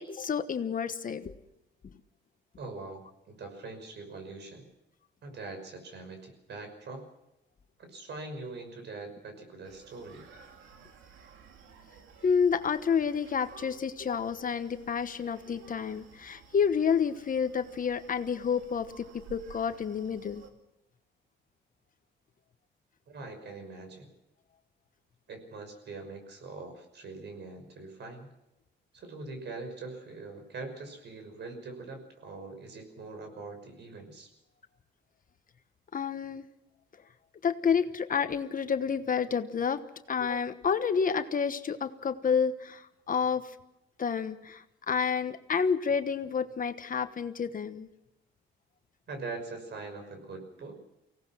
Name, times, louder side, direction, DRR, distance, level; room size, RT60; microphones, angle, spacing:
voice 1, 0.0-1.3 12.2-20.4 35.9-36.4 37.4-39.8 40.1-42.8 43.1-43.4 44.0-47.9, left 6 dB, 45° left, 10 dB, 1.2 m, -29 dB
voice 2, 2.6-4.6 5.2-7.0 7.8-10.2 23.1-24.1 25.3-28.3 28.9-34.3 49.1-50.7, right 3 dB, 60° right, 6 dB, 5.8 m, -43 dB
Screaming, 9.6-20.5, right 6 dB, 80° right, 2.6 m, -54 dB
24.5 x 17.5 x 6.3 m, 0.88 s
cardioid pair, 90°, 20 cm